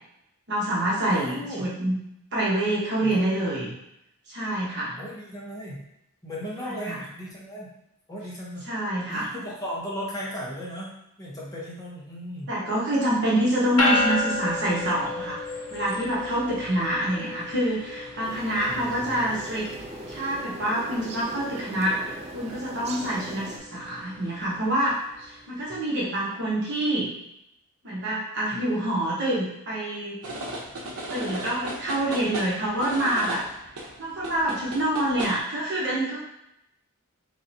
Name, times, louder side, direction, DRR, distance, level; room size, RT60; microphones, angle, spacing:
voice 1, 0.5-2.0 2.3-3.7 4.3-4.9 6.6-7.0 8.7-9.3 12.5-15.4 15.7-19.7 20.1-27.1 27.8-30.2 31.1-33.4 34.0-36.3, right 1 dB, 50° right, -7 dB, 1.1 m, -26 dB
voice 2, 1.1-1.7 3.0-3.4 5.0-5.8 6.2-7.7 8.1-8.6 9.0-12.5 18.7-19.4 28.5-28.6, equal, 15° left, -6 dB, 0.9 m, -36 dB
sound 1, 13.8-25.4, left 2 dB, 85° left, 0.8 m, -33 dB
sound 2, 18.2-23.6, right 2 dB, 30° right, 0.3 m, -40 dB
sound 3, 30.2-35.4, right 1 dB, 80° right, 0.7 m, -36 dB
3.8 x 3.0 x 2.7 m, 0.82 s
head